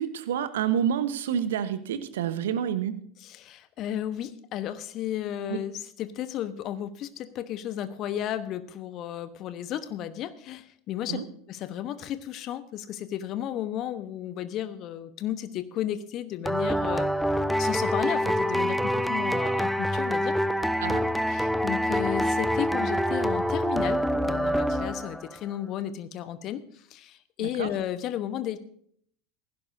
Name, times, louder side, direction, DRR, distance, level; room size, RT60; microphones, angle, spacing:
voice 1, 0.0-2.9 5.5-5.6 11.1-11.2 20.8-21.0 27.4-27.7, right 9 dB, 70° right, 12 dB, 1.1 m, -28 dB
voice 2, 3.2-11.2 11.5-17.1 17.6-20.3 21.3-26.6 26.9-28.6, left 11 dB, 45° left, 13 dB, 1.1 m, -33 dB
sound 1, 16.5-25.4, equal, ahead, 0.7 m, -26 dB
16.0 x 15.5 x 2.7 m, 0.62 s
figure-of-eight pair, 75°, 0 cm